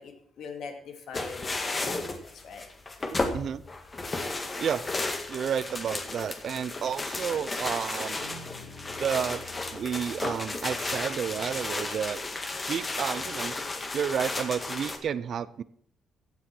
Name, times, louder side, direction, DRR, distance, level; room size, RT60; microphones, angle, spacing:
voice 1, 0.0-2.7 8.4-9.0, left 5 dB, 75° left, 4 dB, 2.8 m, -43 dB
sound 1, 1.1-15.0, left 2 dB, 30° left, 1.9 m, -33 dB
voice 2, 5.3-8.2 9.0-9.4 9.7-12.2 12.7-13.6 13.9-15.6, right 8 dB, 60° right, 17 dB, 0.6 m, -31 dB
Guitar, 8.1-11.3, left 1 dB, 50° left, 7.4 m, -49 dB
16.0 x 7.1 x 6.1 m, 0.63 s
cardioid pair, 90°, 0 cm